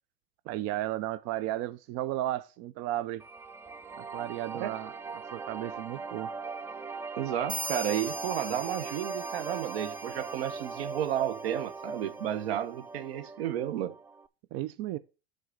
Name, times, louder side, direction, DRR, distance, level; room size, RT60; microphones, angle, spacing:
voice 1, 0.5-3.2 4.0-6.3 14.5-15.0, right 14 dB, 60° right, 0.5 m, -34 dB
sound 1, 3.2-14.3, right 4 dB, 10° right, 0.3 m, -40 dB
voice 2, 7.2-13.9, right 11 dB, 85° right, 1.0 m, -32 dB
sound 2, 7.5-11.1, right 1 dB, 25° right, 1.3 m, -41 dB
7.7 x 4.0 x 6.4 m
supercardioid pair, 105°, 30 cm